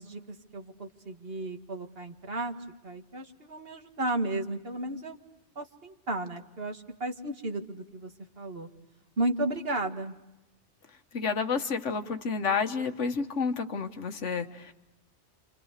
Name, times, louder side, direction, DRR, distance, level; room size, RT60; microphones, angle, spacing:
voice 1, 0.0-2.5 2.8-5.2 5.6-8.1 8.4-8.7 9.2-10.1, right 2 dB, 55° right, 5 dB, 2.1 m, -34 dB
voice 2, 11.1-14.7, left 5 dB, 85° left, 8 dB, 1.7 m, -30 dB
30.0 x 27.5 x 6.6 m, 0.94 s
omnidirectional pair, 1.2 m